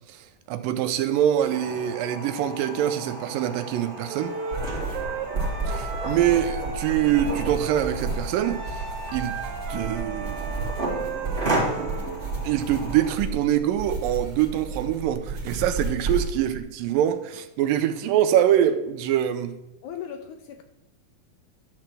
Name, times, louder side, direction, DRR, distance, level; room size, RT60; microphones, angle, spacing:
voice 1, 0.5-4.4 5.7-8.8 9.1-9.4 9.7-10.7 12.4-19.5, right 11 dB, 85° right, 2.3 m, -24 dB
sound 1, 1.5-13.1, right 2 dB, 20° right, 1.9 m, -34 dB
Wind instrument woodwind instrument, 4.1-7.6 8.4-12.1, right 4 dB, 60° right, 2.3 m, -36 dB
sound 2, 4.5-16.6, right 3 dB, 35° right, 2.5 m, -32 dB
voice 2, 19.8-20.6, left 9 dB, 80° left, 1.9 m, -37 dB
11.5 x 4.5 x 7.5 m
omnidirectional pair, 4.0 m